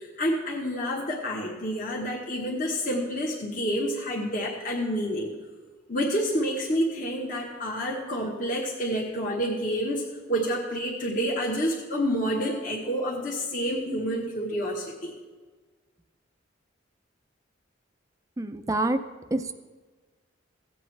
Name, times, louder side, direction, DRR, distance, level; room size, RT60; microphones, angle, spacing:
voice 1, 0.0-5.3 5.9-15.1, equal, 40° left, -3 dB, 1.3 m, -28 dB
voice 2, 18.4-19.0 19.3-19.5, right 2 dB, 15° right, 9 dB, 0.4 m, -26 dB
16.5 x 7.8 x 3.3 m, 1.4 s
head